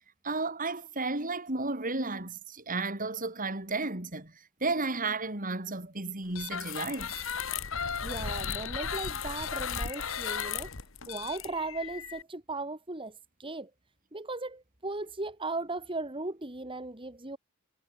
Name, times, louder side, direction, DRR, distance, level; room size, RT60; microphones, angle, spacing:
voice 1, 0.2-4.3 4.6-7.1, right 3 dB, 40° right, 4.7 m, -33 dB
sound 1, 6.3-12.2, left 7 dB, 65° left, 2.0 m, -35 dB
voice 2, 8.0-10.7 11.1-13.7 14.1-17.4, right 2 dB, 25° right, 2.2 m, -37 dB
head